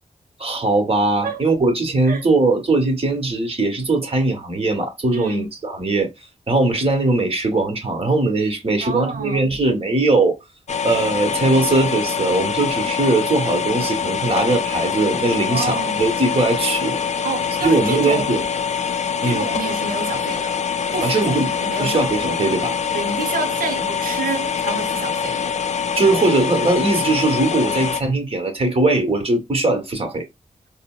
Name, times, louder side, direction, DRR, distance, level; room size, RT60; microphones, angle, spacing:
voice 1, 0.4-6.1 6.5-10.4 10.8-17.0 17.6-18.4 19.2-19.5 21.0-21.5 21.8-22.7 26.0-30.2, right 2 dB, 40° right, 1.3 m, -20 dB
voice 2, 5.1-5.5 8.8-9.5 15.5-16.0 17.2-18.3 19.2-20.6 20.9-22.2 22.9-25.4, right 4 dB, 80° right, 0.7 m, -28 dB
sound 1, 10.7-28.0, left 7 dB, 55° left, 0.4 m, -24 dB
3.8 x 2.0 x 2.2 m
cardioid pair, 60°, 14 cm